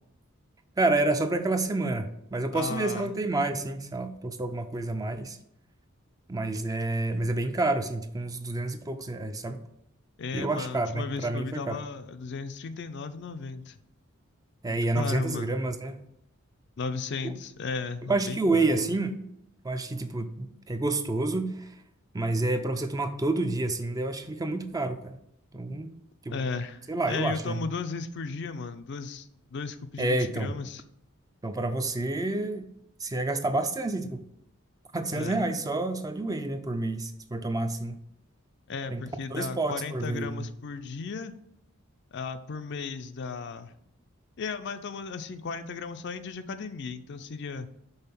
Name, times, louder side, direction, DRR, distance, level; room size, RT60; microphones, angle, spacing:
voice 1, 0.8-5.4 6.3-9.6 10.3-11.8 14.6-16.0 17.2-17.3 18.1-19.2 19.6-21.7 22.1-25.2 25.5-25.9 26.3-26.4 26.9-27.6 30.0-30.5 31.4-32.7 33.0-34.2 34.9-38.0 38.9-39.0 39.3-40.5, right 2 dB, 15° right, 8 dB, 0.4 m, -29 dB
voice 2, 2.5-3.1 10.2-13.8 14.7-15.6 16.8-18.9 26.3-30.8 35.1-35.4 38.7-41.3 42.1-43.7 44.4-47.7, left 4 dB, 55° left, 10 dB, 0.4 m, -35 dB
5.6 x 3.7 x 5.9 m, 0.76 s
head